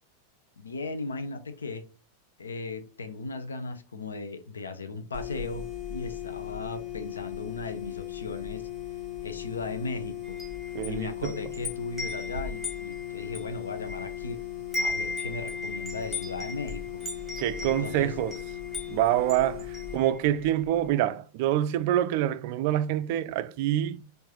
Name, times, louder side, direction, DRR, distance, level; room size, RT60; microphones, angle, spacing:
voice 1, 0.6-1.8 2.4-8.6 9.2-10.4 10.8-14.4 14.8-17.0 17.6-18.2, left 3 dB, 70° left, 0.6 m, -37 dB
sound 1, 5.1-20.0, left 13 dB, 30° left, 1.6 m, -38 dB
Wind chime, 10.2-14.3 14.6-20.5, left 2 dB, 5° left, 1.5 m, -37 dB
voice 2, 10.7-11.3 17.4-18.3 18.9-24.0, right 12 dB, 50° right, 0.3 m, -26 dB
4.5 x 2.6 x 3.0 m
figure-of-eight pair, 90°, 0 cm